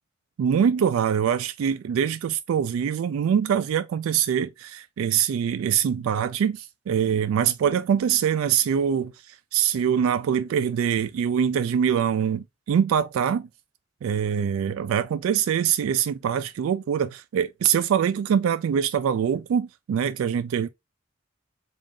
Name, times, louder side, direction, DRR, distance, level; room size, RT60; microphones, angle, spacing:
voice 1, 0.4-13.5 14.0-20.7, right 8 dB, 85° right, 0.3 m, -24 dB
3.7 x 2.4 x 3.6 m
head